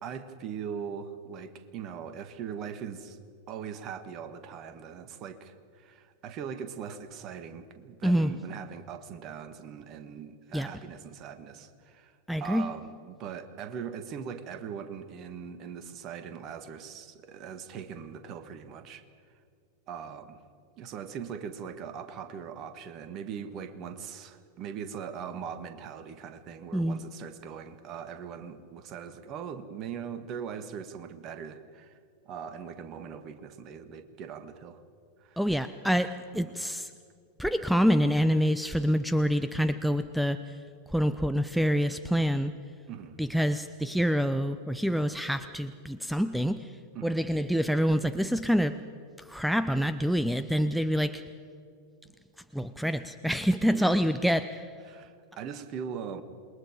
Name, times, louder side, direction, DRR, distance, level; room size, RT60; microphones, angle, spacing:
voice 1, 0.0-3.2 3.5-19.0 19.9-20.4 20.8-32.0 32.2-34.8 35.2-35.4 36.4-36.5 42.9-43.2 46.9-47.2 53.7-54.1 54.9-56.2, right 7 dB, 35° right, 10 dB, 1.7 m, -40 dB
voice 2, 8.0-8.3 10.5-10.7 12.3-12.7 26.7-27.0 35.4-36.9 37.4-40.6 40.9-42.5 43.2-48.8 49.2-51.2 52.5-54.7, equal, ahead, 12 dB, 0.6 m, -27 dB
27.5 x 22.0 x 5.0 m, 2.3 s
figure-of-eight pair, 90°, 0 cm